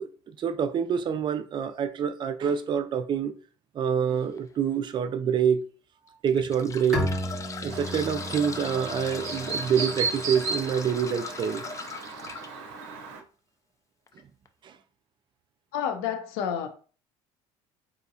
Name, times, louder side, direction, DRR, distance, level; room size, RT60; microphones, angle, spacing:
voice 1, 0.0-3.4 3.7-5.6 6.2-7.1 7.6-11.6 14.6-14.7, right 7 dB, 35° right, 0.4 m, -26 dB
sound 1, 4.1-4.4 5.0-5.1 6.1-12.5 14.1-14.2 14.5-14.6, left 5 dB, 25° left, 0.4 m, -39 dB
Bowed string instrument, 6.9-10.4, equal, ahead, 1.0 m, -34 dB
Chirp tweet, 7.7-13.2, right 4 dB, 85° right, 0.7 m, -35 dB
voice 2, 15.7-16.7, left 8 dB, 85° left, 0.7 m, -29 dB
3.7 x 2.8 x 2.7 m
supercardioid pair, 100°, 13 cm